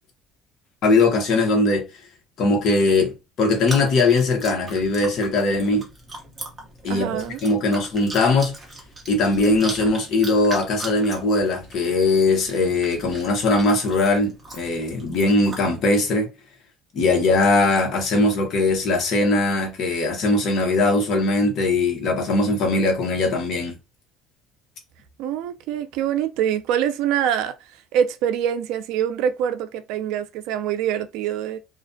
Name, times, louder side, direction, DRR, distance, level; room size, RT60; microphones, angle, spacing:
voice 1, 0.8-1.8 2.4-5.9 6.8-8.5 9.1-16.3 16.9-23.8, left 2 dB, 45° left, 0.8 m, -20 dB
Chewing mastication, 3.5-15.6, right 2 dB, 15° right, 0.7 m, -39 dB
voice 2, 6.8-7.4 25.2-27.6 27.9-31.6, right 9 dB, 70° right, 0.4 m, -24 dB
2.4 x 2.1 x 2.6 m
cardioid pair, 160°, 0 cm